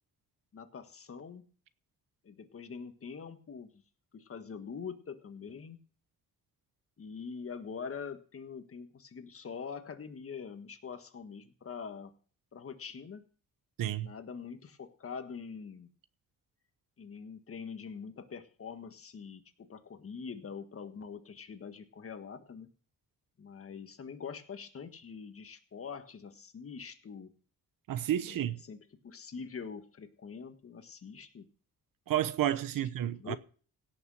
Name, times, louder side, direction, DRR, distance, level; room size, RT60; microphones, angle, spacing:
voice 1, 0.5-1.4 2.2-3.8 4.1-5.8 7.0-12.1 12.5-13.2 14.0-15.9 17.0-22.7 23.4-27.3 28.3-28.8 29.0-31.5 33.2-33.4, left 6 dB, 40° left, 1.6 m, -44 dB
voice 2, 13.8-14.1 27.9-28.6 32.1-33.4, right 12 dB, 75° right, 1.0 m, -31 dB
17.0 x 6.6 x 6.3 m
cardioid pair, 120°, 34 cm